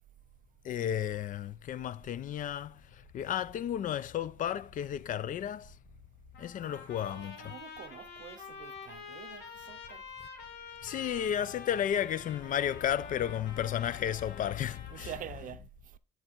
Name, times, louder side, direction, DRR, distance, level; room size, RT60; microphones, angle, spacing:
voice 1, 0.6-2.8 3.1-5.7 6.4-7.5 10.8-15.6, left 10 dB, 50° left, 0.5 m, -33 dB
Trumpet, 6.3-15.3, left 5 dB, 75° left, 2.2 m, -47 dB
voice 2, 7.1-10.0 14.9-15.6, right 11 dB, 55° right, 0.6 m, -46 dB
10.0 x 4.2 x 4.5 m
cardioid pair, 110°, 17 cm